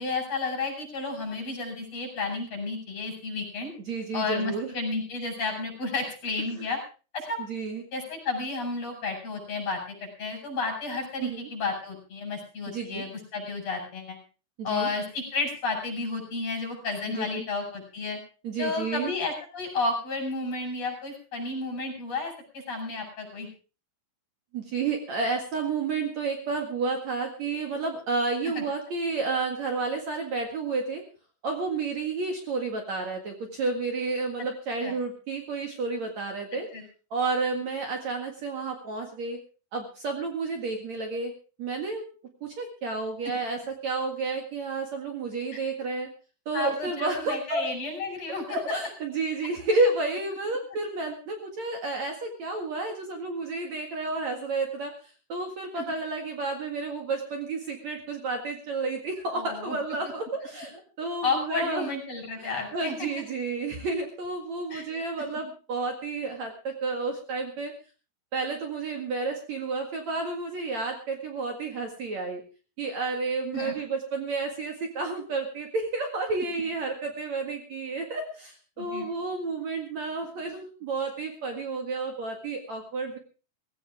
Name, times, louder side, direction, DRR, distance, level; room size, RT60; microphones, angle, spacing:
voice 1, 0.0-3.7 4.1-6.8 7.1-7.4 7.9-14.2 14.6-18.2 18.6-23.5 28.4-28.6 34.4-34.5 34.8-34.9 36.7-36.8 45.5-45.6 46.5-48.6 55.7-55.8 59.3-59.8 61.2-63.1 64.7-64.8 73.5-73.7 78.8-79.1, left 3 dB, 40° left, 3 dB, 6.7 m, -32 dB
voice 2, 3.9-4.7 6.6-6.7 7.5-7.8 11.2-11.5 12.7-13.0 14.6-14.9 17.1-17.4 18.4-19.1 24.5-31.0 31.4-36.7 37.1-39.4 39.7-41.3 41.6-42.0 42.4-46.1 46.5-47.7 48.5-54.9 55.3-61.9 62.4-67.7 68.3-72.4 72.8-83.2, right 3 dB, 50° right, 3 dB, 2.9 m, -31 dB
17.5 x 16.5 x 3.6 m, 0.35 s
omnidirectional pair, 4.4 m